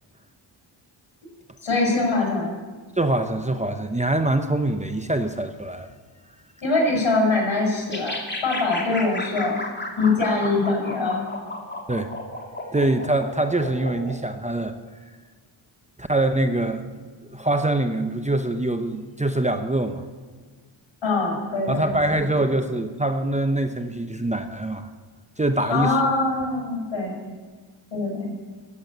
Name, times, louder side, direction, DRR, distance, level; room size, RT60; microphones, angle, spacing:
voice 1, 1.6-2.5 6.6-9.6 10.0-11.2 21.0-21.9 25.7-27.3 27.9-28.3, left 3 dB, 70° left, -1 dB, 5.8 m, -23 dB
voice 2, 3.0-5.9 11.9-12.1 12.7-14.7 16.0-16.9 17.3-20.0 21.7-24.9 25.4-26.0, right 2 dB, 15° right, 7 dB, 0.8 m, -24 dB
sound 1, 7.9-14.2, left 2 dB, 20° left, 2.8 m, -33 dB
13.5 x 8.8 x 8.5 m, 1.5 s
cardioid pair, 65°, 49 cm